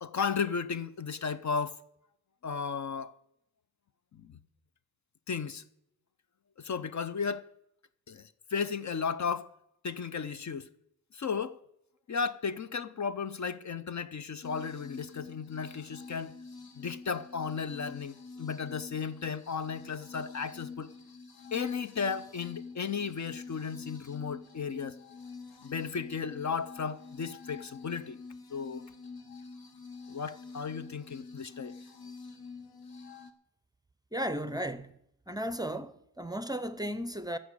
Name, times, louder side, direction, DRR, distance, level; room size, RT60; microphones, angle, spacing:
voice 1, 0.0-1.8 2.4-3.1 4.1-4.4 5.3-5.6 6.6-7.5 8.1-9.5 9.8-10.7 11.1-11.6 12.1-16.3 16.8-20.9 21.5-25.0 25.6-28.2 28.5-28.8 30.1-31.7, left 6 dB, 50° left, 0.6 m, -34 dB
sound 1, 14.4-33.3, left 4 dB, 75° left, 1.1 m, -47 dB
voice 2, 34.1-34.9 35.3-37.4, equal, 10° right, 0.6 m, -35 dB
14.5 x 6.2 x 8.2 m
wide cardioid pair, 125°, 37 cm